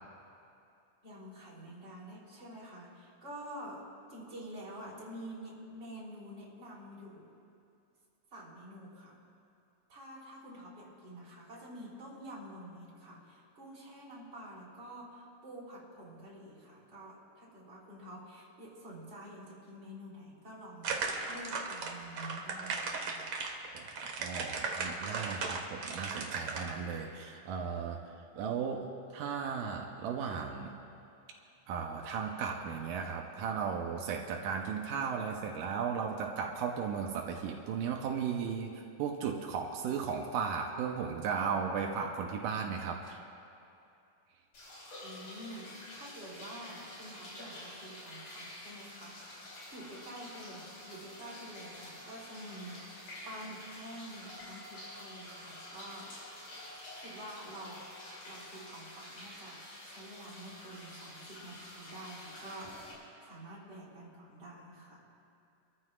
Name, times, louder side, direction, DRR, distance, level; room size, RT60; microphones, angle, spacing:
voice 1, 1.0-3.8 4.1-7.3 8.3-9.2 9.9-23.2 45.0-56.4 57.0-57.8 58.3-62.8 63.2-65.0, right 1 dB, 30° right, -6 dB, 4.0 m, -48 dB
sound 1, 20.8-26.7, right 4 dB, 55° right, 1.5 m, -37 dB
voice 2, 23.7-30.7 31.7-43.2, right 6 dB, 85° right, 1 dB, 2.5 m, -36 dB
sound 2, 44.5-62.9, left 1 dB, 65° left, 5.1 m, -48 dB
28.5 x 14.0 x 2.5 m, 2.6 s
omnidirectional pair, 3.7 m